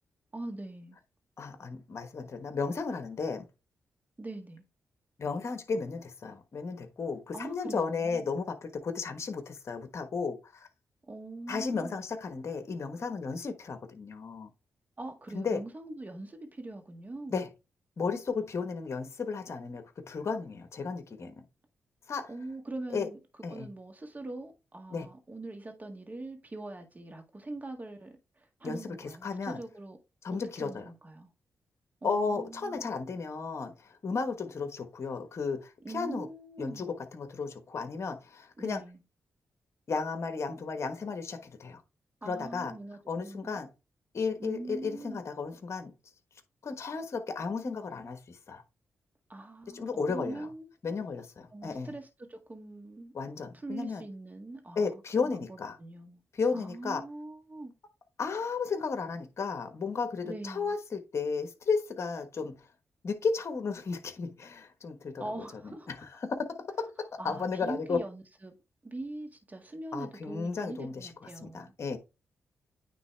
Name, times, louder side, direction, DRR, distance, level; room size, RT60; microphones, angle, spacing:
voice 1, 0.3-1.0 4.2-4.6 7.3-8.3 11.1-12.0 15.0-17.4 22.3-23.2 23.5-30.0 30.6-31.3 32.0-32.9 35.8-36.9 38.6-39.0 42.2-43.6 44.4-45.2 49.3-50.7 51.5-53.1 53.5-56.2 56.5-57.7 60.2-60.7 65.2-65.9 67.2-68.5 68.8-71.7, right 2 dB, 30° right, 1.8 m, -42 dB
voice 2, 1.4-3.5 5.2-10.7 11.5-14.5 15.3-15.6 17.3-17.5 18.0-21.4 22.1-22.3 22.9-23.1 23.4-23.7 24.9-25.1 28.6-29.6 30.2-30.9 32.0-36.3 36.6-38.8 39.9-41.8 42.2-42.7 43.1-43.7 44.1-45.9 46.6-48.6 49.7-50.5 50.8-51.9 53.1-54.0 54.7-55.8 56.3-57.0 58.2-62.5 63.0-65.3 65.6-66.0 66.4-68.0 69.9-71.1 71.4-72.0, left 4 dB, 55° left, 1.2 m, -34 dB
9.3 x 3.3 x 3.3 m
cardioid pair, 60°, 6 cm